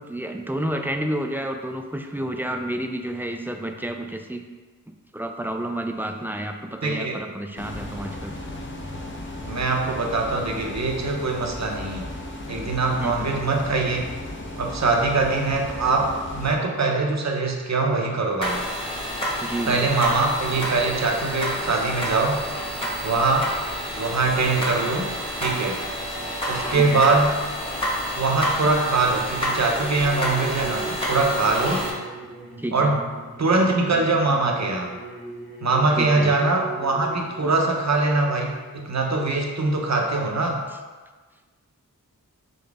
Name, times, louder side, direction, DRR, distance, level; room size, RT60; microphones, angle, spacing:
voice 1, 0.0-4.4 5.1-8.3 13.0-13.3 19.4-19.8 26.7-27.1 32.6-32.9 36.0-36.3, right 1 dB, 5° right, 4 dB, 0.3 m, -30 dB
voice 2, 6.8-7.2 9.4-12.1 12.5-14.0 14.6-18.6 19.7-22.4 23.0-23.5 24.0-25.1 25.4-25.8 26.5-27.4 28.1-31.8 32.7-33.0 33.4-34.9 35.6-40.6, right 3 dB, 50° right, 1 dB, 0.7 m, -22 dB
sound 1, 7.6-16.6, left 1 dB, 35° left, 0.7 m, -35 dB
sound 2, 18.4-31.9, equal, 15° left, 1.1 m, -29 dB
sound 3, 29.5-37.4, right 3 dB, 80° right, 1.1 m, -39 dB
4.0 x 3.9 x 3.4 m, 1.3 s
wide cardioid pair, 80°, 35 cm